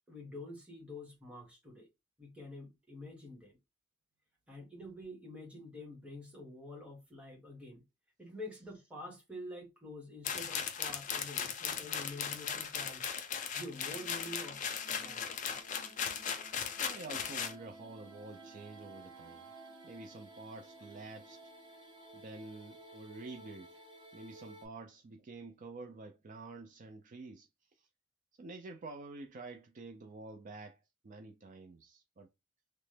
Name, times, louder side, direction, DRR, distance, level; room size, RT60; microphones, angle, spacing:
voice 1, 0.1-1.9 2.2-3.6 4.5-7.8 8.2-13.0 13.5-14.6 14.9-15.6, left 1 dB, 5° right, 1.0 m, -47 dB
sound 1, 10.3-17.6, left 7 dB, 40° left, 0.4 m, -38 dB
sound 2, 13.7-24.7, right 2 dB, 25° right, 0.8 m, -56 dB
voice 2, 16.8-19.5 19.8-21.4 22.1-23.8 24.1-27.5 27.8-27.9 28.4-30.8 31.0-32.3, right 3 dB, 40° right, 0.3 m, -48 dB
Wind instrument woodwind instrument, 16.9-21.8, right 4 dB, 85° right, 1.0 m, -59 dB
3.0 x 2.1 x 3.2 m
head